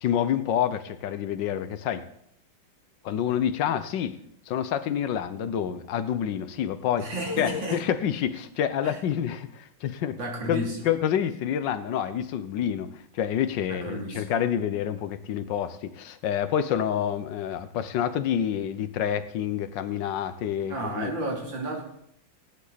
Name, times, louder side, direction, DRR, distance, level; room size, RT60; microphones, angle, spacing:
voice 1, 0.0-2.1 3.0-4.2 4.5-7.1 7.4-10.2 10.5-21.1, left 9 dB, 70° left, 12 dB, 1.4 m, -28 dB
voice 2, 7.0-7.8 8.8-9.0 10.2-10.9 13.7-14.2 20.7-21.8, right 1 dB, 70° right, -1 dB, 3.7 m, -32 dB
17.0 x 11.0 x 4.1 m, 0.72 s
omnidirectional pair, 2.2 m